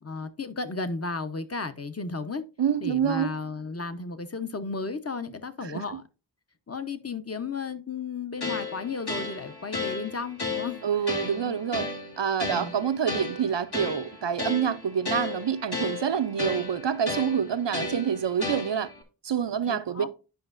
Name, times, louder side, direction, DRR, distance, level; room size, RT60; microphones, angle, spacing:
voice 1, 0.0-2.4 2.8-6.0 6.7-10.8 11.3-11.6 12.4-12.7 19.7-20.1, left 4 dB, 35° left, 0.9 m, -34 dB
voice 2, 2.6-3.3 5.6-6.0 10.8-11.9 12.2-18.9 19.2-20.1, right 8 dB, 75° right, 0.7 m, -27 dB
sound 1, 8.4-19.0, left 3 dB, 60° left, 2.1 m, -34 dB
10.5 x 5.6 x 2.6 m
wide cardioid pair, 45°, 43 cm